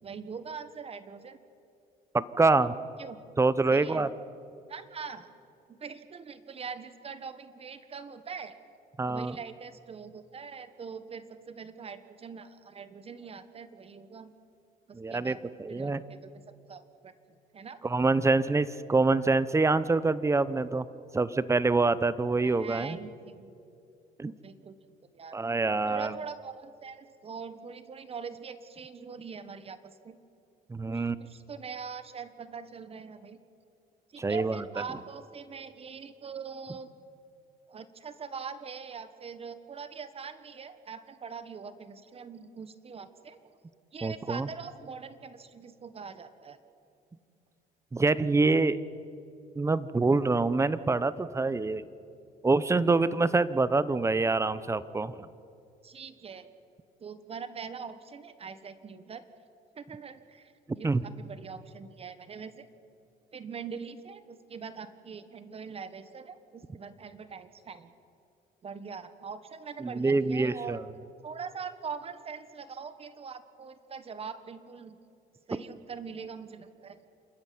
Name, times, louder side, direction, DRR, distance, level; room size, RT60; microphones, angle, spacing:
voice 1, 0.0-1.4 3.0-3.2 3.7-4.1 4.7-5.3 5.7-8.6 9.1-14.3 14.9-15.4 15.7-16.4 16.7-17.1 17.5-17.8 22.4-23.5 24.4-24.8 25.1-25.4 25.8-30.2 30.9-33.4 34.1-36.9 37.7-43.5 43.9-46.6 55.8-56.5 57.0-59.2 59.7-62.7 63.3-67.9 68.6-70.8 71.2-75.0 75.5-77.0, right 6 dB, 35° right, 12 dB, 1.3 m, -42 dB
voice 2, 2.1-2.7 3.4-4.1 9.0-9.4 14.9-16.0 17.8-20.8 21.1-23.0 24.2-24.3 25.3-26.1 30.7-31.2 34.2-34.6 44.0-44.5 47.9-48.8 49.6-51.8 52.4-55.2 60.8-61.0 69.8-70.8, right 3 dB, 15° right, 16 dB, 0.8 m, -26 dB
28.0 x 13.0 x 9.5 m, 2.6 s
cardioid pair, 110°, 17 cm